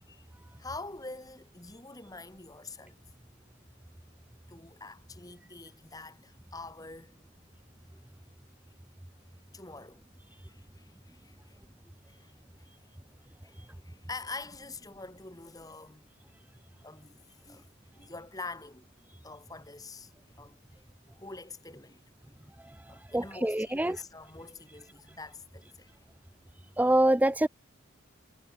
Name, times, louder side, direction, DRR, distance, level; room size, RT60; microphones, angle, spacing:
voice 1, 0.6-3.0 4.5-7.2 9.5-11.6 12.1-12.3 12.6-12.7 13.4-16.0 16.8-17.6 17.9-18.9 19.2-20.1 20.4-20.6 21.2-22.0 22.9-25.9, left 3 dB, 20° left, 2.2 m, -45 dB
voice 2, 23.1-24.0 26.8-27.5, right 1 dB, 10° right, 0.4 m, -25 dB
head